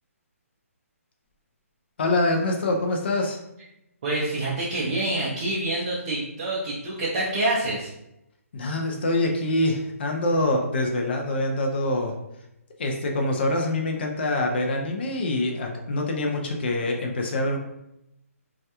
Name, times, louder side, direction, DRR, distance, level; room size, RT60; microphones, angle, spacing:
voice 1, 2.0-3.4 8.5-12.1 12.8-17.6, left 2 dB, 45° left, 2 dB, 0.4 m, -25 dB
voice 2, 4.0-7.9, right 2 dB, 25° right, -7 dB, 0.4 m, -27 dB
2.3 x 2.1 x 2.8 m, 0.85 s
hypercardioid pair, 170°, 8 cm